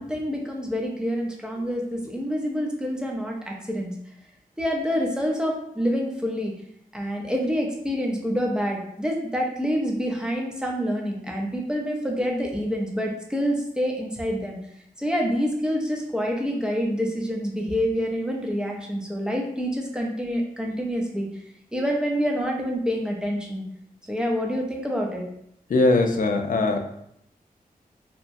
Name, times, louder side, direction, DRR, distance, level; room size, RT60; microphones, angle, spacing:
voice 1, 0.0-3.9 4.6-6.5 6.9-14.6 15.0-21.3 21.7-23.6 24.1-25.2, equal, 5° right, -1 dB, 0.6 m, -27 dB
voice 2, 25.7-26.8, left 2 dB, 60° left, 5 dB, 0.4 m, -20 dB
2.9 x 2.2 x 2.6 m, 0.72 s
wide cardioid pair, 65°, 15 cm